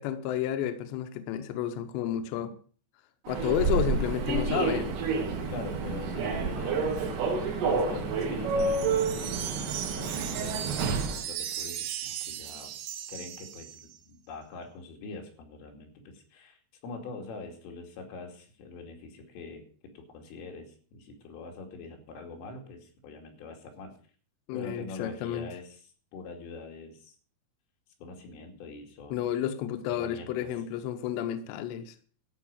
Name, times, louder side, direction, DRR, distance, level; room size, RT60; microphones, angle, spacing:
voice 1, 0.0-2.5 3.3-4.9 24.5-25.5 29.1-31.9, left 10 dB, 75° left, 3.0 m, -31 dB
Human voice / Subway metro underground, 3.2-11.2, right 4 dB, 55° right, 2.7 m, -29 dB
voice 2, 5.5-11.0 11.3-12.8 13.1-24.0 24.5-25.8 26.1-27.1 28.0-29.3 29.9-30.5, left 3 dB, 90° left, 5.0 m, -43 dB
sound 1, 8.6-14.0, right 10 dB, 85° right, 2.0 m, -37 dB
13.5 x 5.8 x 8.8 m
omnidirectional pair, 5.6 m